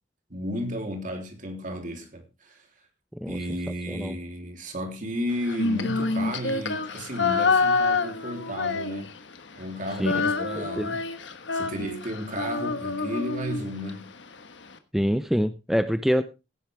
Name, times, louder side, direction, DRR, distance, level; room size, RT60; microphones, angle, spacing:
voice 1, 0.3-2.6 3.3-9.1 9.6-11.0 11.5-14.1, equal, 45° right, 3.3 m, -33 dB
voice 2, 3.9-4.2 10.0-10.1 10.6-10.9 14.9-16.2, equal, ahead, 0.5 m, -25 dB
Female singing, 5.4-9.4 9.6-13.9, left 4 dB, 75° left, 1.4 m, -27 dB
16.5 x 10.5 x 3.4 m
head